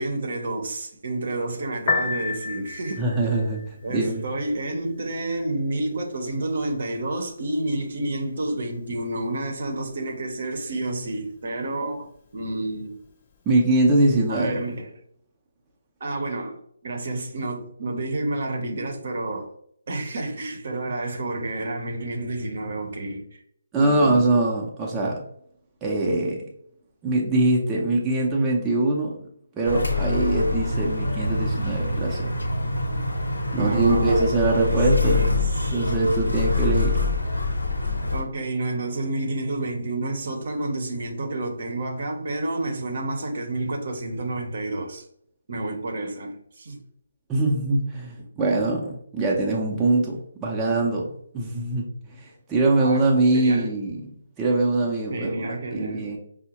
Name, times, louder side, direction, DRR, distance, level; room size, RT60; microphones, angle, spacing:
voice 1, 0.0-3.4 3.8-13.0 14.3-14.9 16.0-19.5 19.9-23.4 23.8-24.3 33.6-34.2 34.6-35.7 36.9-37.0 38.1-45.0 45.5-46.8 52.8-53.1 53.3-53.9 55.1-56.1, right 2 dB, 55° right, 0.7 m, -30 dB
Piano, 1.7-14.8, left 4 dB, 30° left, 0.5 m, -37 dB
voice 2, 3.0-3.6 3.9-4.2 13.5-14.6 23.7-25.2 25.8-26.4 27.0-29.2 29.6-32.3 33.5-35.3 35.7-36.9 47.3-54.0 54.4-56.2, right 2 dB, 15° right, 0.6 m, -23 dB
sound 1, 29.6-38.2, left 3 dB, 85° left, 0.8 m, -25 dB
5.2 x 2.1 x 2.9 m
figure-of-eight pair, 145°, 0 cm